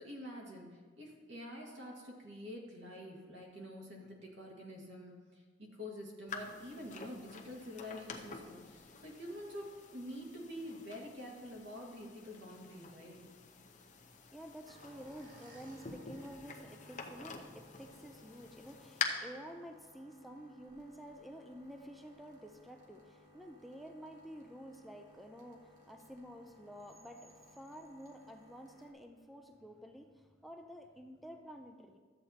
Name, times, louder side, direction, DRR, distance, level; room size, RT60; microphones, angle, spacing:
voice 1, 0.0-13.2, equal, 85° right, -1 dB, 1.9 m, -47 dB
sound 1, 6.3-19.0, left 6 dB, 40° left, 0.7 m, -47 dB
voice 2, 14.1-32.0, equal, ahead, 4 dB, 0.4 m, -51 dB
sound 2, 14.6-28.9, left 1 dB, 45° right, 1.2 m, -61 dB
13.0 x 7.9 x 2.8 m, 1.5 s
head